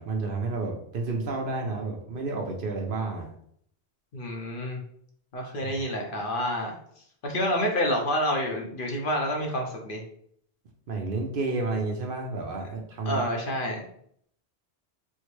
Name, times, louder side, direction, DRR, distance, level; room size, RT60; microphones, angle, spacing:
voice 1, 0.0-3.3 5.4-5.8 10.9-13.2, right 3 dB, 60° right, 1 dB, 0.7 m, -31 dB
voice 2, 4.1-4.8 5.3-6.7 7.2-10.0 13.1-13.8, equal, 55° left, 1 dB, 0.8 m, -28 dB
4.5 x 2.1 x 3.0 m, 0.66 s
omnidirectional pair, 1.2 m